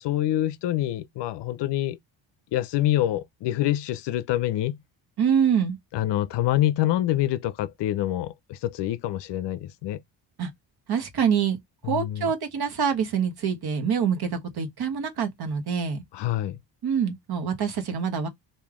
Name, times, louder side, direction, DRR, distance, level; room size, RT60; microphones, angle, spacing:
voice 1, 0.0-2.0 2.5-4.8 5.9-10.0 11.8-12.3 16.1-16.6, left 13 dB, 65° left, 0.5 m, -26 dB
voice 2, 5.2-5.8 10.4-10.5 10.9-11.6 11.8-16.0 16.8-18.3, right 7 dB, 55° right, 1.1 m, -25 dB
3.2 x 2.7 x 3.6 m
cardioid pair, 75°, 46 cm